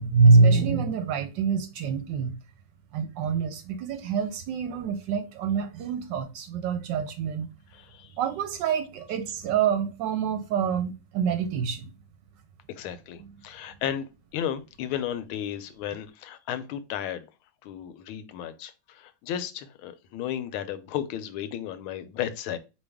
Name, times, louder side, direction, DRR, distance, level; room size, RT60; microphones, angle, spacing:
voice 1, 0.0-2.3 2.9-7.5 8.2-11.9 13.2-13.3, right 5 dB, 75° right, 1.1 m, -25 dB
voice 2, 7.7-8.1 12.7-14.1 14.3-17.3 17.6-22.6, left 10 dB, 85° left, 1.4 m, -34 dB
4.4 x 3.0 x 3.4 m
omnidirectional pair, 2.2 m